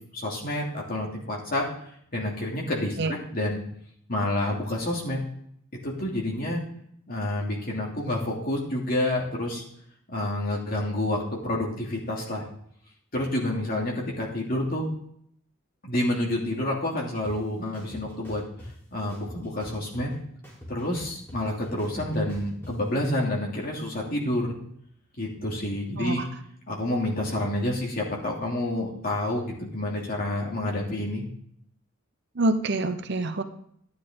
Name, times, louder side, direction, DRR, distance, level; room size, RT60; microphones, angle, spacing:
voice 1, 0.1-1.7 2.1-3.6 4.1-5.2 5.8-6.6 7.1-9.6 10.1-12.5 13.1-14.9 15.8-18.4 18.9-20.1 20.7-24.5 25.2-26.2 26.7-31.2, left 1 dB, 45° left, -2 dB, 2.8 m, -28 dB
sound 1, 17.2-17.3 17.7-18.7 19.1-20.1 20.4-22.7, equal, 10° left, 3.8 m, -43 dB
voice 2, 32.4-33.4, right 2 dB, 55° right, 9 dB, 0.8 m, -26 dB
12.0 x 9.7 x 3.8 m, 0.68 s
head